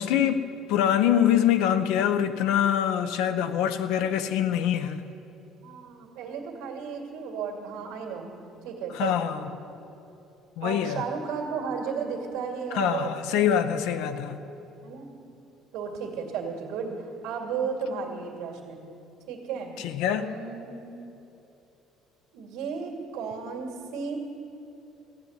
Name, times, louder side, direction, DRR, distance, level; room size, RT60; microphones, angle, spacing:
voice 1, 0.0-5.0 8.9-9.4 10.6-11.0 12.7-14.4 19.8-20.3, left 10 dB, 90° left, 10 dB, 0.7 m, -24 dB
voice 2, 5.6-8.3 8.6-9.5 10.6-13.4 13.7-14.3 14.8-15.1 15.7-18.8 19.3-19.8 20.1-20.8 22.3-24.2, right 6 dB, 85° right, 1 dB, 2.2 m, -34 dB
15.5 x 6.8 x 9.6 m, 2.9 s
cardioid pair, 165°, 0 cm